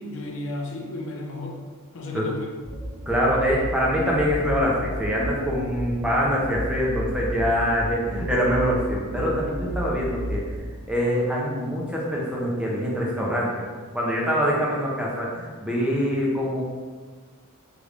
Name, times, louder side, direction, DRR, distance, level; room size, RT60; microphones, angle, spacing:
voice 1, 0.0-1.6 1.9-2.5, left 2 dB, 60° left, 1 dB, 0.5 m, -33 dB
sound 1, 2.6-10.6, equal, 75° right, 1.4 m, -33 dB
voice 2, 3.1-10.4 10.9-13.6 13.9-16.6, equal, 5° right, -4 dB, 0.5 m, -24 dB
3.2 x 3.2 x 2.4 m, 1.4 s
head